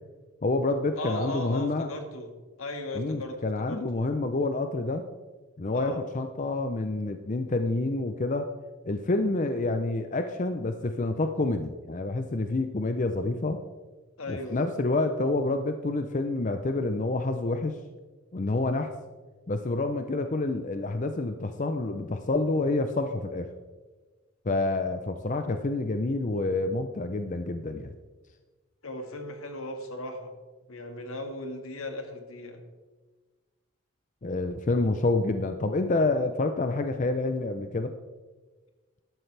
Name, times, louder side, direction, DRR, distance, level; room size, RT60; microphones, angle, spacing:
voice 1, 0.4-1.9 2.9-5.0 5.6-8.5 8.9-13.6 14.3-17.8 18.3-18.9 19.5-23.5 24.5-27.9 34.2-37.9, left 2 dB, 35° left, 7 dB, 0.5 m, -28 dB
voice 2, 1.0-2.3 2.6-3.8 5.7-6.0 14.2-14.6 28.8-30.3 30.7-32.6, left 1 dB, 80° left, 5 dB, 1.7 m, -36 dB
13.5 x 11.5 x 3.3 m, 1.3 s
head